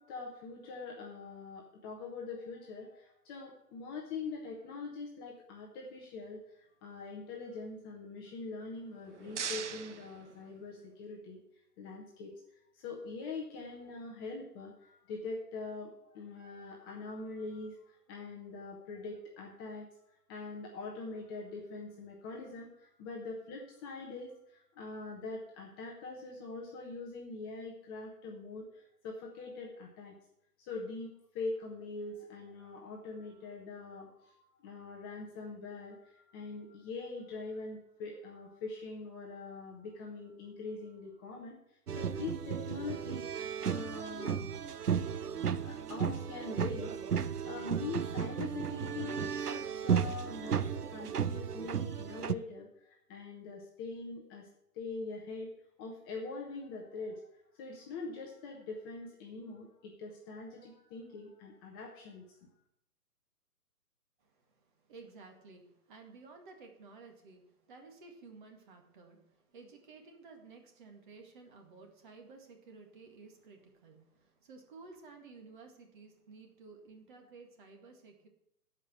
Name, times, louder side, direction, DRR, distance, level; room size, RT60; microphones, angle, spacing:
voice 1, 0.0-11.4 11.8-12.4 12.7-20.0 20.3-30.2 30.6-41.6 41.9-44.8 45.6-54.5 54.7-57.3 57.5-62.4, left 3 dB, 15° left, -1 dB, 1.0 m, -43 dB
sound 1, 8.8-11.0, right 7 dB, 50° right, 0.8 m, -42 dB
sound 2, 41.9-52.3, right 7 dB, 80° right, 0.7 m, -34 dB
voice 2, 64.2-78.3, right 4 dB, 30° right, 3 dB, 2.0 m, -54 dB
12.0 x 5.4 x 8.1 m, 0.77 s
figure-of-eight pair, 130°, 46 cm